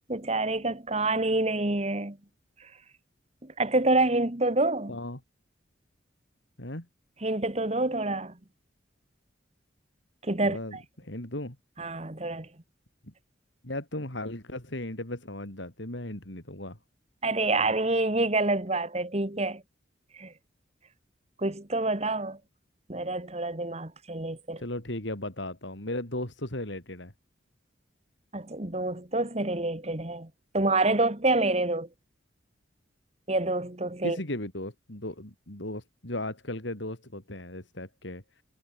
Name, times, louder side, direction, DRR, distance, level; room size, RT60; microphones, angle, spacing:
voice 1, 0.1-2.2 2.6-2.7 3.4-5.0 7.2-8.4 10.2-10.8 11.8-12.5 17.2-19.6 20.1-20.3 21.4-22.4 22.9-24.6 28.3-31.9 33.3-34.2, right 2 dB, 35° right, 1.8 m, -27 dB
voice 2, 4.9-5.2 6.6-6.9 10.4-11.6 13.6-16.8 24.6-27.1 34.0-38.2, left 1 dB, 70° left, 4.4 m, -36 dB
head